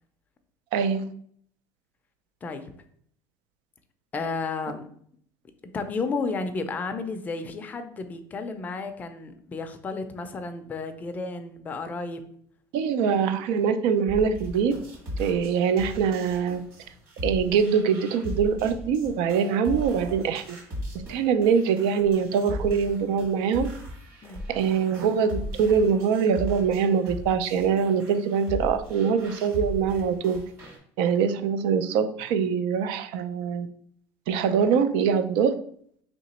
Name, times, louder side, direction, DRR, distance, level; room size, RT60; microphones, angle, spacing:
voice 1, 0.7-1.1 12.7-14.8 15.2-16.6 17.2-20.6 21.1-23.7 24.5-30.4 31.0-33.7 34.3-35.5, right 6 dB, 75° right, 10 dB, 0.4 m, -23 dB
voice 2, 4.1-4.9 5.7-12.2 24.2-24.4, left 4 dB, 20° left, 7 dB, 0.4 m, -32 dB
sound 1, 14.1-30.8, left 1 dB, 40° right, 1.6 m, -38 dB
3.1 x 2.9 x 4.2 m, 0.63 s
cardioid pair, 160°, 8 cm